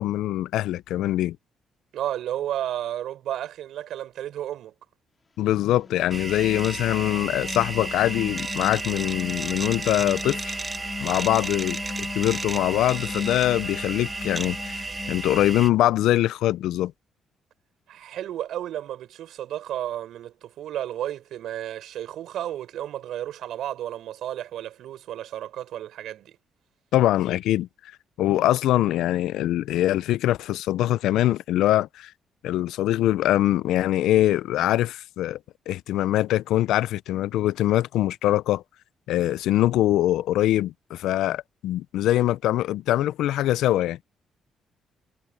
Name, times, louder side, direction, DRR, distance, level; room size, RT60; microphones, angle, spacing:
voice 1, 0.0-1.4 5.4-10.6 11.0-16.9 26.9-27.7 28.2-32.1 32.4-35.4 35.7-38.6 39.1-44.0, left 14 dB, 85° left, 0.4 m, -23 dB
voice 2, 1.9-4.7 17.9-26.4, right 11 dB, 80° right, 5.6 m, -32 dB
sound 1, 5.6-16.1, left 4 dB, 30° left, 3.8 m, -38 dB
sound 2, 6.1-15.7, right 3 dB, 25° right, 1.7 m, -33 dB
cardioid pair, 90°, 0 cm